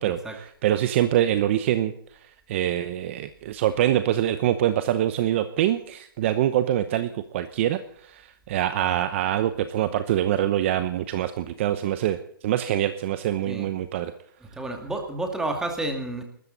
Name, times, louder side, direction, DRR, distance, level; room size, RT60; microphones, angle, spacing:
voice 1, 0.0-12.2 12.4-14.1, right 12 dB, 30° right, 11 dB, 0.8 m, -25 dB
voice 2, 14.4-16.2, right 2 dB, 5° right, 4 dB, 2.2 m, -30 dB
21.5 x 13.5 x 4.0 m, 0.63 s
hypercardioid pair, 165°, 12 cm